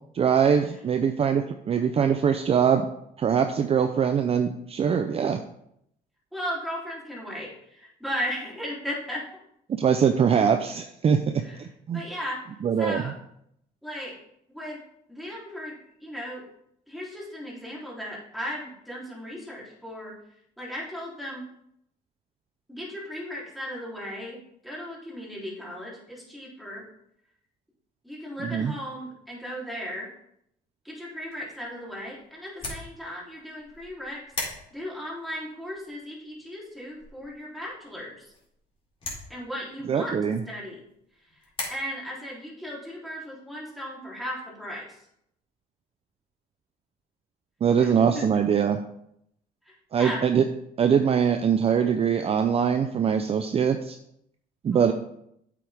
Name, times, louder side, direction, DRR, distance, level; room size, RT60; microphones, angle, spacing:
voice 1, 0.1-2.9 3.2-5.4 9.7-11.2 11.6-12.1 12.6-13.1 28.4-28.7 39.9-40.4 47.6-48.8 49.9-50.4 50.8-54.0 54.6-54.9, right 7 dB, 35° right, 7 dB, 0.6 m, -22 dB
voice 2, 6.3-9.3 11.4-11.6 11.9-12.4 12.8-13.1 13.8-14.2 14.5-14.8 15.1-15.8 16.0-16.5 16.9-20.2 20.6-21.5 22.7-26.8 28.0-30.1 30.8-34.2 34.7-38.3 39.3-40.1 40.5-40.8 41.3-41.4 41.7-45.0 47.8-47.9 48.1-48.2 49.7-50.2 54.7-54.9, equal, ahead, -5 dB, 3.4 m, -36 dB
sound 1, 31.1-41.7, left 2 dB, 30° left, 3.7 m, -42 dB
8.6 x 7.8 x 3.5 m, 0.74 s
cardioid pair, 110°, 17 cm